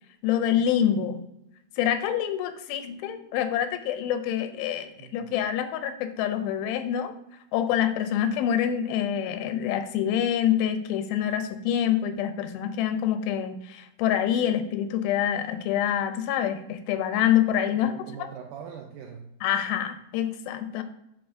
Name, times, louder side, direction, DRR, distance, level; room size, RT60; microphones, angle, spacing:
voice 1, 0.2-1.2 1.8-7.1 7.5-18.3 19.4-20.8, left 10 dB, 85° left, 9 dB, 2.4 m, -26 dB
voice 2, 5.0-5.3 17.7-19.4, right 7 dB, 85° right, 2 dB, 1.8 m, -42 dB
10.0 x 3.7 x 2.6 m, 0.81 s
omnidirectional pair, 4.2 m